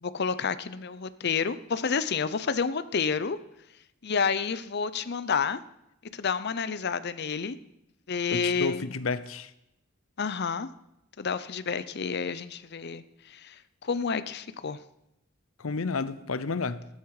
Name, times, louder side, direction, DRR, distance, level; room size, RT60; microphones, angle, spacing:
voice 1, 0.0-3.4 4.0-5.6 6.1-7.6 8.1-8.8 10.2-10.7 11.2-14.8, left 5 dB, 55° left, 0.7 m, -29 dB
voice 2, 8.3-9.5 15.6-16.9, left 4 dB, 90° left, 0.7 m, -31 dB
14.0 x 13.0 x 4.9 m
head